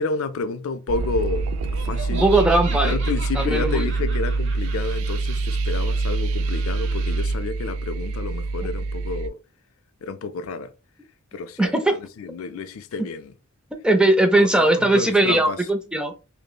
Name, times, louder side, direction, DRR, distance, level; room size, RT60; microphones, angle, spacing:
voice 1, 0.0-1.5 1.7-2.2 2.8-9.4 10.0-10.7 11.3-13.3 14.3-15.6, left 4 dB, 75° left, 0.4 m, -30 dB
sound 1, 0.9-9.3, right 3 dB, 80° right, 0.3 m, -25 dB
Laughter, 1.6-7.2, right 4 dB, 60° right, 1.0 m, -39 dB
voice 2, 2.1-3.0 3.4-3.9 11.6-11.9 13.8-16.1, right 2 dB, 5° right, 0.4 m, -19 dB
5.1 x 2.0 x 2.3 m
head